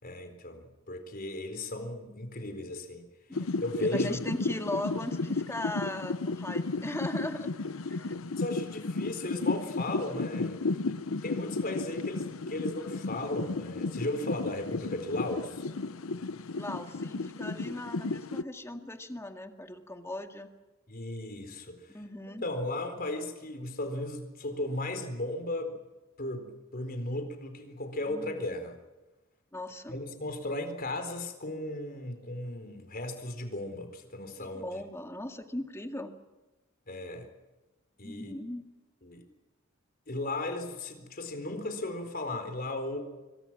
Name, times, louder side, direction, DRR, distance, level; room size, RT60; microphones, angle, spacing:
voice 1, 0.0-3.1 3.6-4.2 8.4-10.6 11.2-15.6 20.9-22.0 22.4-25.8 26.2-28.8 29.9-34.8 36.9-37.3 38.0-38.3 39.0-39.2 40.1-43.0, left 1 dB, 45° left, 7 dB, 4.1 m, -36 dB
sound 1, 3.3-18.4, left 3 dB, 80° left, 0.8 m, -34 dB
voice 2, 3.9-7.5 7.9-8.2 16.6-20.5 21.9-22.4 28.1-28.4 29.5-30.0 34.4-36.1 38.0-38.7, left 1 dB, 15° left, 5 dB, 2.0 m, -38 dB
26.5 x 24.5 x 6.1 m, 1.1 s
head